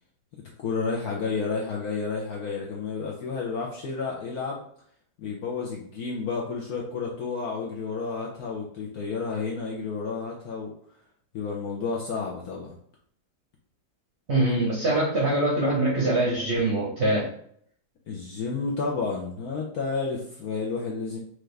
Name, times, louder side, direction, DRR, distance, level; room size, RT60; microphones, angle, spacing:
voice 1, 0.6-4.6 5.2-10.7 11.3-12.7 18.1-21.2, left 4 dB, 65° left, -2 dB, 0.9 m, -31 dB
voice 2, 14.3-17.3, right 1 dB, 50° right, -5 dB, 0.9 m, -23 dB
4.6 x 2.5 x 3.2 m, 0.64 s
omnidirectional pair, 2.1 m